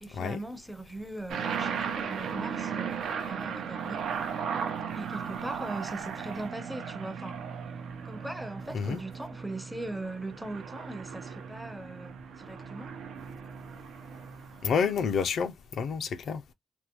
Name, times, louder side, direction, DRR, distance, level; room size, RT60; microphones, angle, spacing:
voice 1, 0.0-4.1 4.9-7.4 8.0-12.9, right 2 dB, 5° right, 0.5 m, -40 dB
sound 1, 1.3-15.0, right 7 dB, 80° right, 0.7 m, -36 dB
voice 2, 14.6-16.4, left 6 dB, 60° left, 0.4 m, -29 dB
3.4 x 2.2 x 2.9 m
cardioid pair, 140°, 0 cm